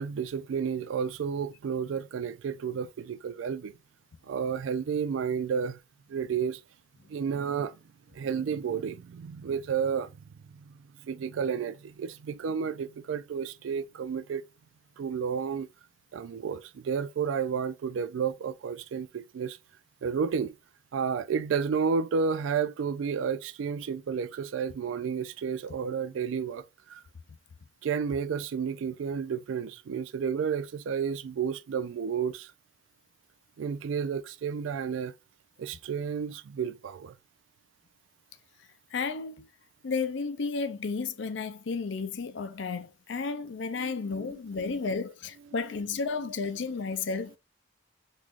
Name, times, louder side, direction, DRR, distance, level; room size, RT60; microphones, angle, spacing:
voice 1, 0.0-3.8 4.3-5.8 6.1-6.6 7.1-7.8 8.1-10.1 10.5-14.4 15.0-15.7 16.1-19.6 20.0-20.5 20.9-27.0 27.8-32.5 33.6-35.1 35.6-37.1 43.8-44.8, right 6 dB, 85° right, 0.3 m, -31 dB
voice 2, 38.9-39.5 39.8-47.4, left 4 dB, 70° left, 0.5 m, -32 dB
3.7 x 3.1 x 2.4 m
head